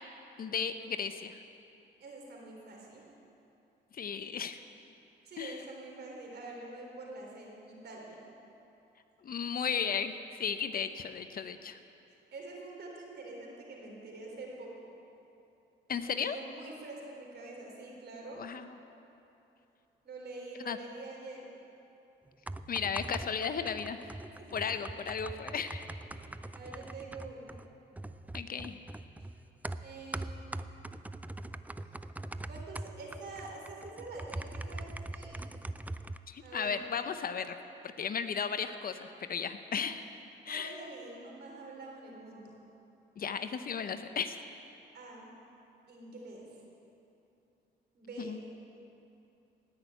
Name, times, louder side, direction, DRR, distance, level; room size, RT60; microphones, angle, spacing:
voice 1, 0.4-1.4 3.9-4.6 5.4-5.6 9.2-11.8 15.9-16.4 18.4-18.8 20.6-20.8 22.7-24.0 24.5-25.9 28.3-28.8 36.3-37.5 38.0-40.0 40.5-40.7 43.2-44.3 48.2-48.4, left 6 dB, 50° left, 10 dB, 0.7 m, -35 dB
voice 2, 2.0-3.0 5.2-8.2 12.3-15.0 16.1-18.5 20.0-21.5 24.4-24.9 25.3-25.6 26.1-27.6 29.8-30.5 32.5-35.4 36.4-36.8 40.4-42.6 44.9-45.3 45.9-46.5 47.9-48.4, right 2 dB, 55° right, -1 dB, 3.8 m, -46 dB
sound 1, 22.3-36.2, right 2 dB, 10° right, 0.4 m, -42 dB
18.0 x 6.3 x 9.3 m, 2.8 s
cardioid pair, 90°, 20 cm